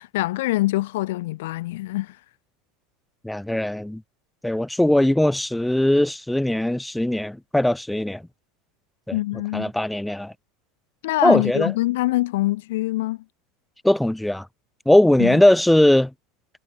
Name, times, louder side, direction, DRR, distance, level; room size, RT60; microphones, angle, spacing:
voice 1, 0.0-2.2 9.1-9.7 11.0-13.2 15.2-15.4, left 18 dB, 80° left, 0.8 m, -24 dB
voice 2, 3.2-4.0 4.4-8.2 9.1-9.2 9.5-10.3 11.2-11.7 13.8-14.5 14.9-16.1, left 1 dB, 5° left, 0.6 m, -19 dB
supercardioid pair, 135°, 0 cm